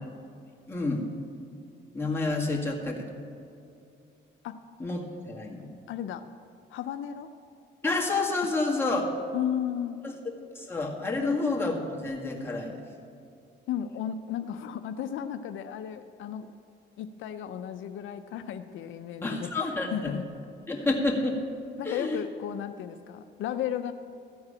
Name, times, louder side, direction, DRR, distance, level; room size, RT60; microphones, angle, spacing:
voice 1, 0.7-1.1 1.9-3.1 4.8-5.7 7.8-9.0 10.0-10.1 10.6-12.8 19.2-20.1 20.7-21.4 21.8-22.2, left 3 dB, 10° left, -2 dB, 1.9 m, -29 dB
voice 2, 5.9-6.2 6.7-7.3 8.9-9.0 9.3-10.0 11.2-11.4 13.7-16.5 17.0-20.2 21.8-23.9, left 9 dB, 75° left, 9 dB, 0.5 m, -34 dB
14.0 x 4.7 x 8.6 m, 2.6 s
cardioid pair, 90°, 20 cm